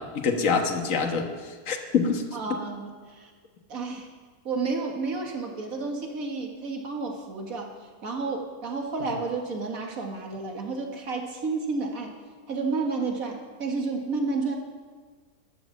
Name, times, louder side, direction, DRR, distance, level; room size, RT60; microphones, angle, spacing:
voice 1, 0.0-2.2 2.5-2.6, left 5 dB, 55° left, 4 dB, 1.6 m, -26 dB
voice 2, 2.3-3.3 3.7-4.1 4.4-7.7 8.0-12.2 12.5-14.6, right 4 dB, 55° right, 2 dB, 2.2 m, -31 dB
12.0 x 11.5 x 7.4 m, 1.5 s
omnidirectional pair, 1.8 m